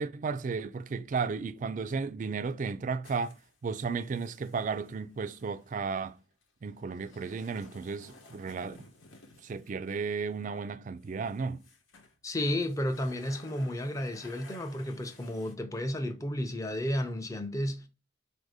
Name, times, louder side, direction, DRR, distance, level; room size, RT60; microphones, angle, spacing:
voice 1, 0.0-3.4 3.6-6.2 6.6-8.9 9.4-11.6, right 5 dB, 40° right, 0.3 m, -34 dB
sound 1, 3.0-10.6 11.0-12.2 12.5-15.6, left 2 dB, 90° left, 1.0 m, -56 dB
voice 2, 12.2-17.9, left 1 dB, 15° left, 0.5 m, -32 dB
4.2 x 2.6 x 4.8 m
head